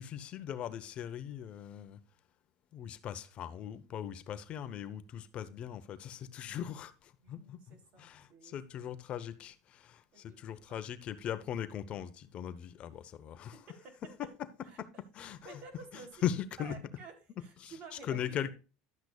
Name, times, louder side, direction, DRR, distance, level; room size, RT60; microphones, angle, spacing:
voice 1, 0.0-2.0 2.7-13.6 14.2-14.3 14.8-14.9 15.1-15.6 15.9-16.8 17.6-18.5, left 10 dB, 45° left, 0.9 m, -40 dB
voice 2, 6.4-6.7 7.2-8.9 10.1-10.4 10.7-10.9 13.8-13.9 14.6-14.8 15.2-18.4, right 5 dB, 50° right, 3.5 m, -53 dB
12.0 x 8.0 x 2.4 m
supercardioid pair, 115°, 3 cm